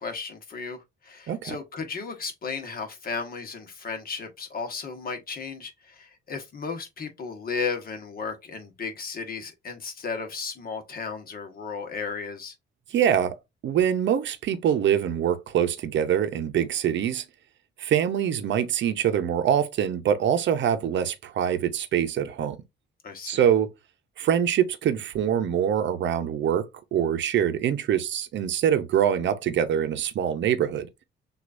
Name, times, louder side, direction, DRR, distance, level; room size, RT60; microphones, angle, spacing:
voice 1, 0.0-12.5 23.0-23.4, left 5 dB, 50° left, 1.4 m, -34 dB
voice 2, 12.9-13.4 13.6-17.2 17.8-22.6 23.3-23.7 24.2-30.9, right 9 dB, 65° right, 0.8 m, -24 dB
6.3 x 2.6 x 2.6 m
cardioid pair, 90°, 20 cm